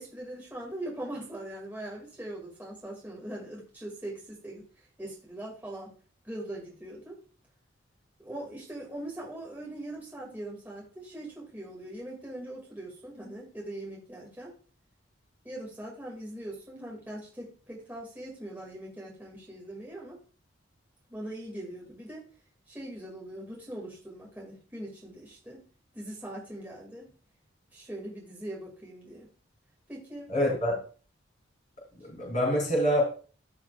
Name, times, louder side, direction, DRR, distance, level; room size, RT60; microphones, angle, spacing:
voice 1, 0.0-5.9 6.2-7.2 8.2-14.5 15.4-20.2 21.1-22.3 22.7-25.6 25.9-27.1 27.7-29.3 29.9-30.3, right 1 dB, 10° right, -4 dB, 2.2 m, -41 dB
voice 2, 30.3-30.7 32.0-33.0, equal, 35° left, -3 dB, 4.6 m, -26 dB
15.0 x 5.9 x 2.4 m, 0.39 s
head